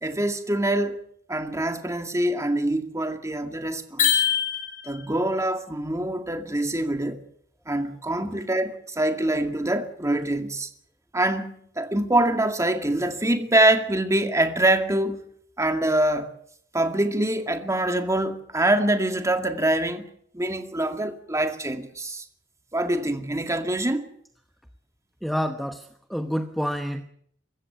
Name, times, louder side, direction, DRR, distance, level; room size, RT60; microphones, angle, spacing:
voice 1, 0.0-1.0 1.3-4.3 4.8-7.2 7.7-10.7 11.1-15.2 15.6-16.3 16.7-20.1 20.3-22.2 22.7-24.1, right 1 dB, 15° right, 2.1 m, -24 dB
sound 1, 4.0-5.1, left 8 dB, 45° left, 7.9 m, -23 dB
voice 2, 25.2-27.1, equal, ahead, 1.0 m, -28 dB
24.5 x 14.5 x 9.5 m
head